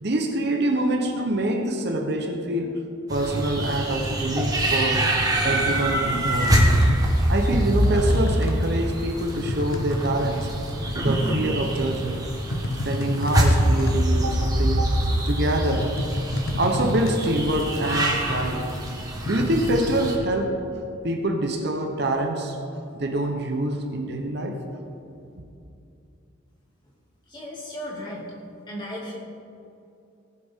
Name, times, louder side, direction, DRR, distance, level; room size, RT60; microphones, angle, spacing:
voice 1, 0.0-2.8 3.1-5.1 5.4-6.6 7.3-10.5 10.9-12.2 12.8-15.9 16.6-18.7 19.2-20.6 21.0-22.6 22.9-24.6, right 1 dB, 50° right, 4 dB, 0.9 m, -25 dB
sound 1, 3.1-20.1, right 1 dB, 15° right, 1.3 m, -24 dB
sound 2, 6.3-20.3, left 1 dB, 75° left, 0.8 m, -31 dB
voice 2, 27.3-28.3 28.7-29.2, equal, 20° left, -5 dB, 2.5 m, -35 dB
18.0 x 7.8 x 3.7 m, 2.7 s
head